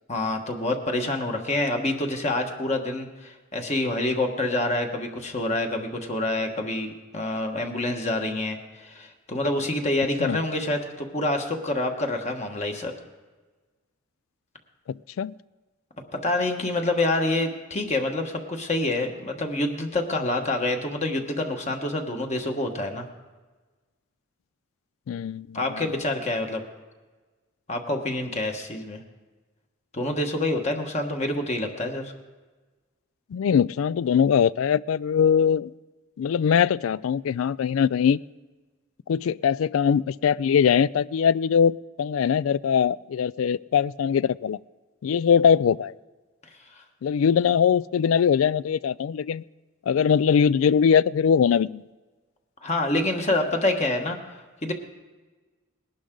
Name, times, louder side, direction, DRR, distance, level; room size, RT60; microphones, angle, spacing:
voice 1, 0.1-12.9 16.2-23.1 25.5-26.6 27.7-29.0 29.9-32.1 52.6-54.2 54.6-54.7, left 2 dB, 35° left, 4 dB, 1.4 m, -27 dB
voice 2, 25.1-25.6 33.3-35.7 36.2-38.2 39.1-44.6 45.0-45.9 47.0-49.4 49.9-51.8, left 7 dB, 85° left, 21 dB, 0.3 m, -21 dB
20.0 x 11.5 x 3.8 m, 1.3 s
head